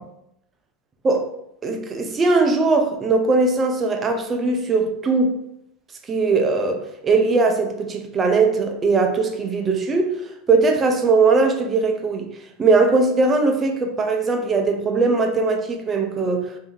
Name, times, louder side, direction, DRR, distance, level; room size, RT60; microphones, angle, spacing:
voice 1, 1.6-5.3 6.1-10.1 10.5-12.3 12.6-16.4, right 3 dB, 25° right, 0.6 m, -20 dB
3.3 x 2.7 x 3.7 m
supercardioid pair, 120°, 0 cm